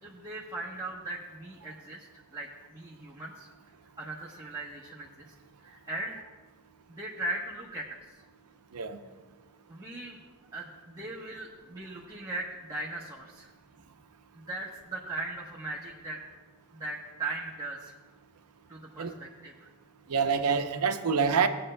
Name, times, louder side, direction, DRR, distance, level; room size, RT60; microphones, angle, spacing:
voice 1, 0.0-3.5 4.0-5.2 5.6-6.2 6.9-8.2 9.7-10.2 10.5-13.5 14.3-16.2 16.7-18.0 18.7-19.7, right 2 dB, 15° right, -5 dB, 1.0 m, -39 dB
voice 2, 20.1-21.5, right 6 dB, 85° right, 8 dB, 0.7 m, -26 dB
18.0 x 8.7 x 2.2 m, 1.3 s
head